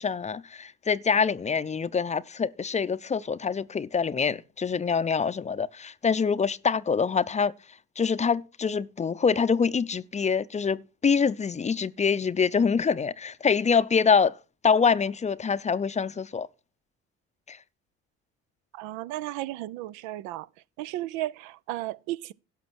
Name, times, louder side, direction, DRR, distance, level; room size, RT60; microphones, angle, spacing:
voice 1, 0.0-7.5 8.0-14.3 14.6-16.5 17.5-17.6, left 6 dB, 25° left, 0.5 m, -25 dB
voice 2, 18.7-20.5 20.8-22.3, right 15 dB, 75° right, 0.5 m, -34 dB
11.5 x 5.9 x 6.1 m
hypercardioid pair, 65°, 29 cm